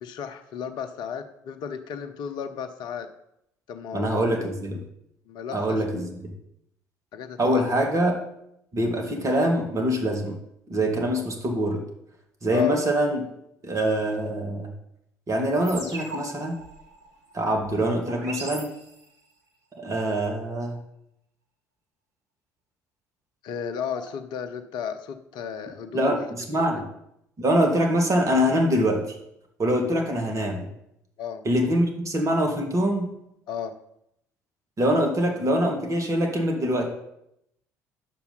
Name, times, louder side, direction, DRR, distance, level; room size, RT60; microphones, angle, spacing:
voice 1, 0.0-3.1 3.7-4.5 5.3-5.8 7.1-7.6 12.5-12.8 23.4-26.2 26.5-26.9 31.2-31.4 33.5-33.7, left 7 dB, 55° left, 9 dB, 0.7 m, -33 dB
voice 2, 3.9-4.8 5.5-6.3 7.4-8.1 8.7-10.3 10.7-11.8 12.4-13.2 13.6-14.7 15.3-16.6 17.3-18.7 19.8-20.8 25.9-26.9 27.4-29.2 29.6-30.7 31.4-33.1 34.8-36.9, equal, 35° right, 2 dB, 2.1 m, -24 dB
sound 1, 15.7-19.3, right 2 dB, 75° right, 1.8 m, -40 dB
9.8 x 6.9 x 4.0 m, 0.78 s
figure-of-eight pair, 50°, 9 cm